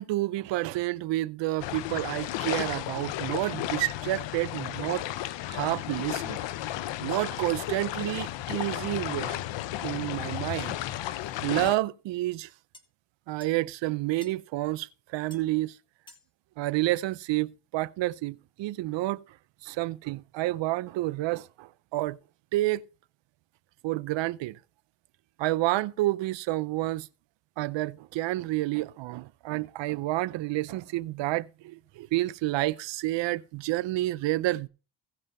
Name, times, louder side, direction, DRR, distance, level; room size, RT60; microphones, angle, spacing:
voice 1, 0.0-5.0 5.5-6.5 7.0-9.4 9.8-10.8 11.4-12.5 13.3-15.8 16.6-19.2 19.6-22.2 22.5-22.8 23.8-24.6 25.4-27.1 27.6-34.7, right 17 dB, 85° right, 0.6 m, -29 dB
sound 1, 1.6-11.7, left 14 dB, 90° left, 0.7 m, -34 dB
sound 2, 11.7-11.8 12.7-12.8 13.4-13.5 14.2-14.4 15.3-15.4 16.1-16.3, left 1 dB, 10° left, 1.7 m, -51 dB
16.5 x 5.5 x 5.4 m
cardioid pair, 85°, 43 cm